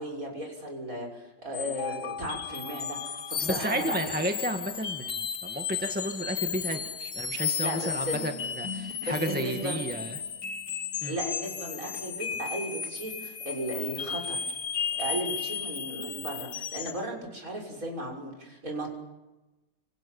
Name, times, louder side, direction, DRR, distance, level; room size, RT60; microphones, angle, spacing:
voice 1, 0.0-4.1 7.6-8.2 9.0-9.8 11.1-14.4 15.0-18.9, right 1 dB, 50° right, 1 dB, 6.9 m, -35 dB
sound 1, 1.5-17.0, left 7 dB, 60° left, 1.8 m, -34 dB
voice 2, 3.4-10.2 11.0-11.1, right 1 dB, 5° right, 3 dB, 1.7 m, -32 dB
30.0 x 27.0 x 7.2 m, 1.1 s
omnidirectional pair, 1.9 m